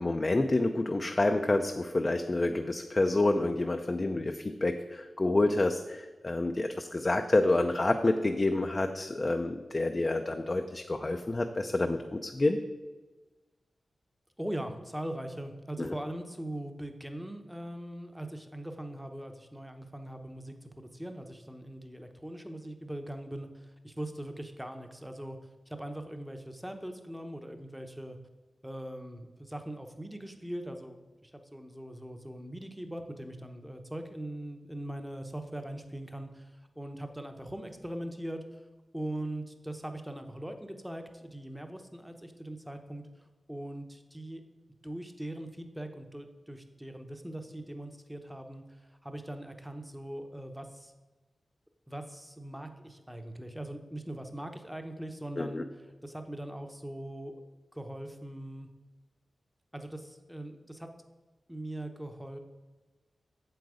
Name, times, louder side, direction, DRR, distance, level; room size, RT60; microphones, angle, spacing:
voice 1, 0.0-12.6 15.8-15.9 55.4-55.6, left 2 dB, 30° left, 5 dB, 0.5 m, -28 dB
voice 2, 14.4-28.2 28.6-38.6 38.9-44.4 44.8-50.9 51.9-57.3 57.7-58.7 59.7-60.9 61.5-62.4, right 1 dB, 5° right, 6 dB, 0.8 m, -41 dB
7.9 x 7.8 x 4.9 m, 1.2 s
wide cardioid pair, 125°, 0 cm